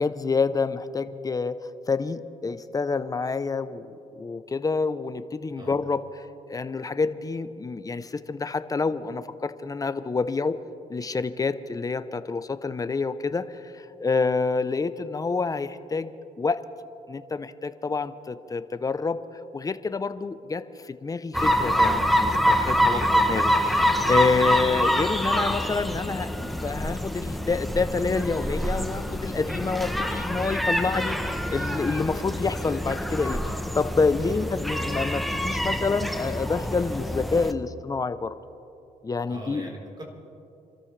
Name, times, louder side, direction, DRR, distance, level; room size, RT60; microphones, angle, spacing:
voice 1, 0.0-1.5 1.9-6.0 6.5-10.6 10.9-16.7 17.1-19.2 19.5-33.4 33.7-38.4 39.0-39.7, left 4 dB, 25° left, 12 dB, 0.7 m, -28 dB
sound 1, 21.3-37.5, equal, ahead, 0.9 m, -26 dB
voice 2, 22.9-23.3 34.3-34.4 39.3-40.0, right 1 dB, 30° right, 0 dB, 4.1 m, -41 dB
27.0 x 13.5 x 3.3 m, 2.7 s
cardioid pair, 90°, 15 cm